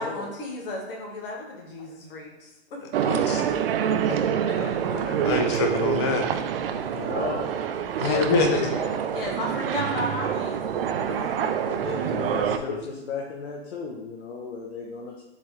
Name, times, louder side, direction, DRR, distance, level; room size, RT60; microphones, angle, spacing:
voice 1, 0.0-2.8 4.1-4.2 4.5-4.6 6.6-6.7 8.0-10.8 11.1-11.3 11.7-12.2, left 1 dB, 55° left, -1 dB, 1.4 m, -34 dB
sound 1, 2.9-12.6, right 8 dB, 55° right, 0.4 m, -26 dB
voice 2, 3.0-3.5 4.9-6.3 8.0-8.7 12.3-12.4 12.7-12.8, left 4 dB, 25° left, 4 dB, 0.4 m, -25 dB
voice 3, 4.8-5.2 6.9-7.5 11.9-15.2, left 4 dB, 75° left, -2 dB, 0.8 m, -35 dB
4.1 x 3.8 x 3.1 m, 0.96 s
hypercardioid pair, 145°, 34 cm